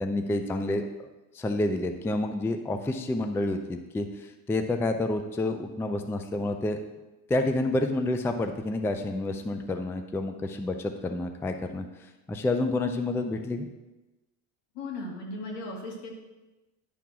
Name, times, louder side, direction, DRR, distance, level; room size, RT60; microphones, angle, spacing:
voice 1, 0.0-0.8 1.3-6.8 7.3-11.8 12.3-13.7, left 2 dB, 5° left, 6 dB, 0.4 m, -29 dB
voice 2, 14.7-16.1, left 2 dB, 75° left, -1 dB, 2.5 m, -37 dB
10.0 x 3.5 x 6.0 m, 1.1 s
supercardioid pair, 115°, 41 cm